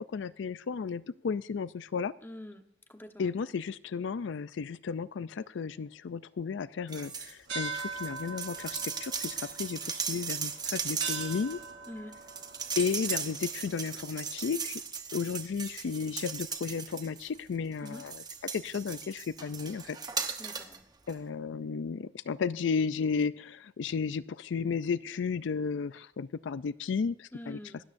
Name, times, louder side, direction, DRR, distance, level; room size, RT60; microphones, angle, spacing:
voice 1, 0.0-2.1 3.2-11.6 12.8-14.8 15.1-18.2 18.5-20.0 21.1-27.6, left 5 dB, 75° left, 16 dB, 0.4 m, -33 dB
voice 2, 2.2-2.6 2.9-3.3 11.9-12.1 17.8-18.1 20.4-20.8 27.3-27.8, left 1 dB, 10° left, 6 dB, 1.1 m, -45 dB
sound 1, 6.9-7.3 7.6-17.4 17.8-20.8 21.1-21.2, right 6 dB, 20° right, 1.0 m, -37 dB
sound 2, 7.5-14.4, right 4 dB, 70° right, 4.3 m, -42 dB
26.0 x 13.0 x 2.6 m, 0.76 s
head